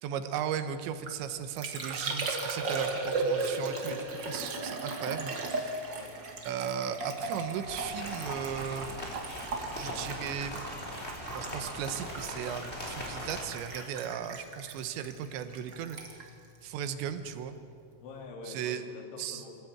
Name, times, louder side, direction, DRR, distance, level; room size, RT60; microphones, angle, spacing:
voice 1, 0.0-5.9 6.5-9.0 9.2-10.6 11.3-16.0 16.6-17.5 18.5-18.8 19.2-19.4, right 8 dB, 80° right, 9 dB, 3.3 m, -36 dB
Liquid, 0.8-17.5 17.7-18.2, right 3 dB, 40° right, 1.7 m, -37 dB
sound 1, 7.6-13.4, equal, 15° left, 3.3 m, -40 dB
sound 2, 7.8-8.2 9.2-10.0 10.9-11.2 12.0-13.2 13.6-14.0, left 3 dB, 55° left, 4.9 m, -52 dB
voice 2, 18.0-19.7, left 3 dB, 80° left, 3 dB, 4.8 m, -46 dB
24.0 x 15.5 x 8.8 m, 2.3 s
omnidirectional pair, 5.3 m